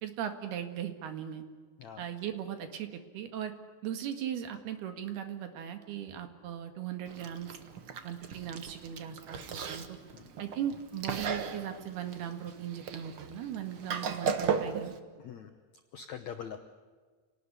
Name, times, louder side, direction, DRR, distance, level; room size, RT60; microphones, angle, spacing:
voice 1, 0.0-1.4 2.0-3.5 3.8-7.5 8.0-10.0 10.4-14.9, right 9 dB, 70° right, 7 dB, 3.8 m, -38 dB
Chewing mastication, 7.1-15.0, right 6 dB, 85° right, 1.1 m, -37 dB
voice 2, 15.2-15.5 15.9-16.6, left 8 dB, 70° left, 6 dB, 1.7 m, -43 dB
28.5 x 19.0 x 9.8 m, 1.5 s
omnidirectional pair, 4.8 m